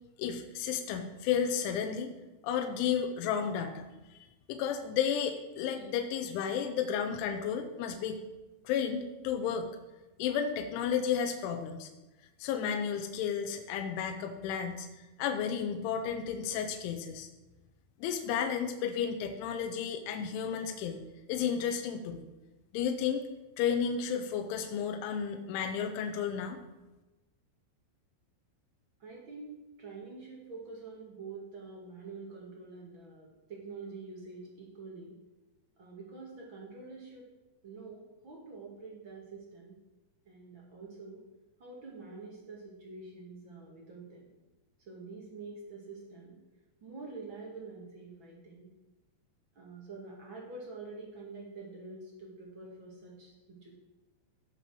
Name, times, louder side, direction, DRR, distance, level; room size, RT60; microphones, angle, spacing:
voice 1, 0.2-2.1 2.4-3.9 4.5-8.2 8.6-9.7 10.2-11.9 12.4-14.9 15.2-17.3 18.0-21.0 21.3-22.3 22.7-23.2 23.6-26.6, left 7 dB, 80° left, 5 dB, 3.3 m, -32 dB
voice 2, 29.0-35.2 35.8-37.3 37.6-39.8 40.2-41.2 41.6-44.3 44.8-46.4 46.8-48.7 49.5-53.7, right 3 dB, 50° right, -2 dB, 1.5 m, -46 dB
16.5 x 5.9 x 6.2 m, 1.1 s
omnidirectional pair, 5.5 m